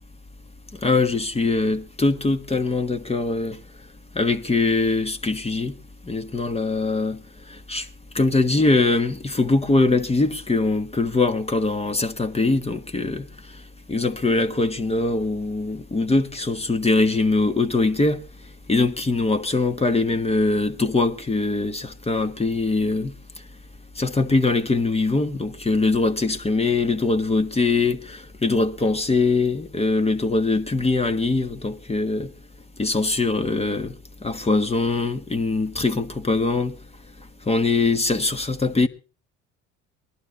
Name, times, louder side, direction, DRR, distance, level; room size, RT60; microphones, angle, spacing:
voice 1, 0.8-3.6 4.1-5.8 6.1-7.2 7.7-7.9 8.1-13.3 13.9-18.2 18.7-23.1 24.0-32.3 32.8-34.0 34.2-36.7 37.5-38.9, left 3 dB, 20° left, 1.3 m, -22 dB
19.5 x 12.0 x 4.2 m
hypercardioid pair, 70°, 32 cm